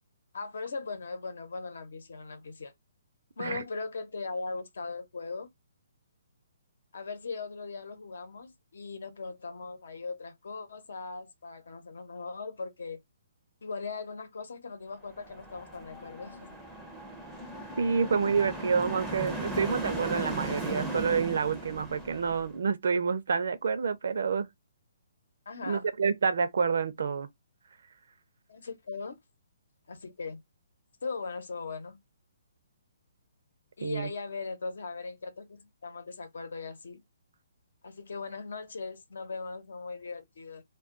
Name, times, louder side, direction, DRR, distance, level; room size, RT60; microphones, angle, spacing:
voice 1, 0.3-2.7 3.4-5.5 6.9-13.0 13.6-16.6 25.5-25.9 28.5-29.2 29.9-30.4 31.0-32.0 33.8-37.0 37.8-40.6, left 4 dB, 75° left, 0.8 m, -39 dB
sound 1, 15.1-22.5, right 1 dB, ahead, 0.5 m, -37 dB
voice 2, 17.8-24.5 25.6-27.3 33.8-34.1, right 5 dB, 65° right, 0.5 m, -28 dB
2.2 x 2.2 x 3.7 m
hypercardioid pair, 165°, 0 cm